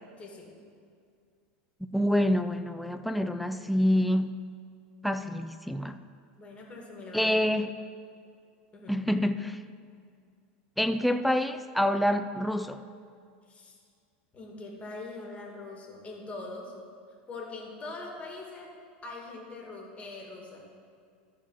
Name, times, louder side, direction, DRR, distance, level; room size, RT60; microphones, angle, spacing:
voice 1, 0.2-0.5 6.4-7.6 8.7-9.0 13.5-13.8 14.3-16.7 17.3-18.7 19.0-20.6, left 3 dB, 25° left, -1 dB, 2.3 m, -42 dB
voice 2, 1.8-4.4 5.0-6.0 7.1-7.7 8.9-9.6 10.8-12.8, equal, ahead, 9 dB, 0.4 m, -27 dB
14.0 x 4.9 x 5.7 m, 2.2 s
hypercardioid pair, 110°, 6 cm